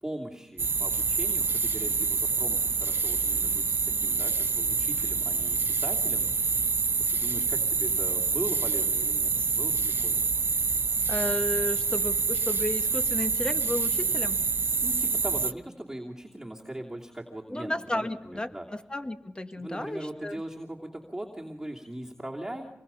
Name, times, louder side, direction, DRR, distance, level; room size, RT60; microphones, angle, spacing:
voice 1, 0.0-6.3 7.1-10.3 14.8-18.7 19.6-22.7, right 1 dB, 10° right, -3 dB, 2.9 m, -40 dB
sound 1, 0.6-15.5, right 4 dB, 55° right, 0.8 m, -27 dB
voice 2, 11.1-14.4 17.5-18.5 18.9-20.4, left 1 dB, 20° left, 7 dB, 1.8 m, -33 dB
27.0 x 21.0 x 5.7 m, 0.92 s
cardioid pair, 75°, 5 cm